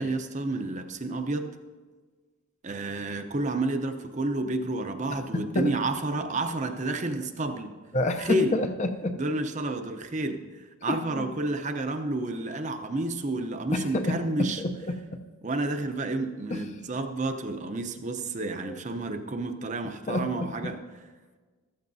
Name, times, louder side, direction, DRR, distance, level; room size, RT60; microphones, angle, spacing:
voice 1, 0.0-1.5 2.6-7.7 8.2-8.5 9.1-14.6 15.4-20.8, right 2 dB, 35° right, 6 dB, 0.7 m, -30 dB
voice 2, 5.3-5.7 7.9-9.2 10.9-11.3 13.7-15.2 16.5-16.7 18.6-18.8 20.1-20.7, left 2 dB, 30° left, 6 dB, 0.5 m, -29 dB
14.0 x 13.0 x 2.7 m, 1.4 s
head